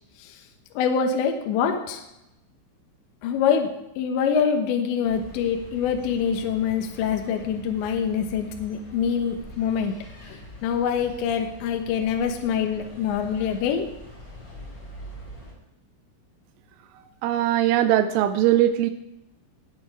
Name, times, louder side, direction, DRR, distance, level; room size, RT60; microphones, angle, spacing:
voice 1, 0.8-2.0 3.2-10.0 10.2-13.9, left 7 dB, 75° left, 4 dB, 3.1 m, -25 dB
sound 1, 5.0-15.5, equal, 25° left, 5.8 m, -44 dB
voice 2, 17.0-18.9, right 12 dB, 90° right, 8 dB, 3.2 m, -21 dB
19.5 x 7.9 x 4.7 m, 0.89 s
omnidirectional pair, 5.7 m